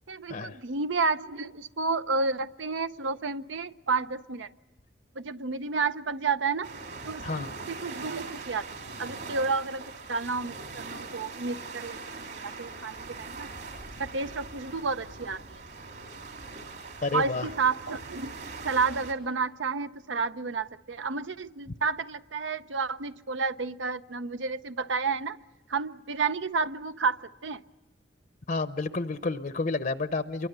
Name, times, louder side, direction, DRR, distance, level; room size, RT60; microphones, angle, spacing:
voice 1, 0.1-4.5 5.1-6.7 7.0-13.5 14.0-15.6 17.1-18.3 18.6-25.4 25.7-27.6, right 4 dB, 85° right, 12 dB, 0.7 m, -31 dB
sound 1, 6.6-19.1, right 3 dB, 60° right, 3.7 m, -41 dB
voice 2, 17.0-17.5 28.5-30.5, left 3 dB, 45° left, 11 dB, 0.7 m, -30 dB
27.0 x 23.0 x 6.8 m, 1.2 s
head